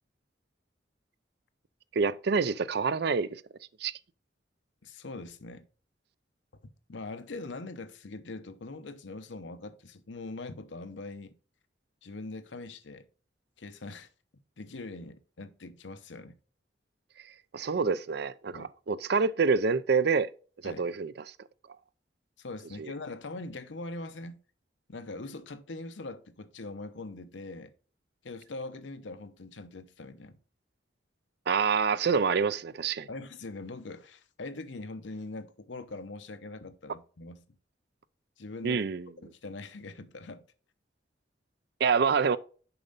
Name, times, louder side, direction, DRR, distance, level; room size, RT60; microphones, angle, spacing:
voice 1, 1.9-3.4 3.8-3.9 17.5-20.3 20.6-21.1 22.8-22.9 31.5-33.1 38.6-39.1 41.8-42.4, right 5 dB, 60° right, 0.5 m, -27 dB
voice 2, 4.8-5.7 6.6-11.3 12.0-13.1 13.6-14.1 14.6-16.3 18.5-18.7 20.6-20.9 22.4-24.4 24.9-27.7 28.2-30.4 33.1-37.4 38.4-38.9 39.2-40.4, left 2 dB, 85° left, 0.9 m, -42 dB
6.9 x 5.4 x 3.9 m
head